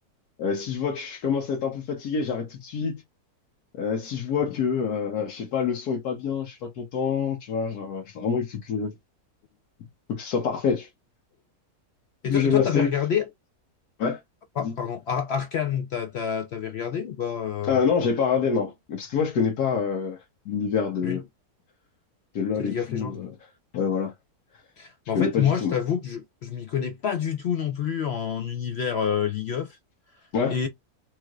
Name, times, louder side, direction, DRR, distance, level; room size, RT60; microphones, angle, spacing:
voice 1, 0.4-3.0 3.7-8.9 10.1-10.9 12.3-12.9 14.0-14.2 14.6-14.7 17.7-21.2 22.3-23.3 23.7-24.1 25.1-25.7 30.3-30.6, left 6 dB, 90° left, 1.3 m, -26 dB
voice 2, 12.2-13.3 14.6-17.8 21.0-21.2 22.6-23.2 24.8-29.8 30.5-30.7, left 8 dB, 70° left, 0.6 m, -28 dB
3.2 x 3.1 x 2.3 m
omnidirectional pair, 1.6 m